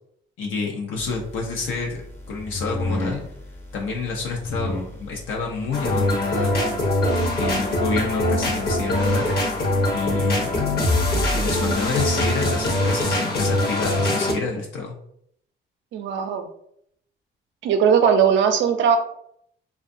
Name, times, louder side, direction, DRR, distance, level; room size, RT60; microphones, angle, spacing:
voice 1, 0.4-2.0 2.3-3.2 3.7-6.6 7.4-9.3 9.9-10.6 11.3-14.9, left 4 dB, 80° left, 0 dB, 0.5 m, -28 dB
sound 1, 1.0-13.2, left 2 dB, 10° left, 0.5 m, -37 dB
sound 2, 5.7-14.3, left 1 dB, 50° left, 0.8 m, -22 dB
voice 2, 15.9-16.5 17.6-19.0, right 7 dB, 70° right, 6 dB, 0.5 m, -19 dB
2.6 x 2.2 x 2.5 m, 0.70 s
cardioid pair, 90°, 20 cm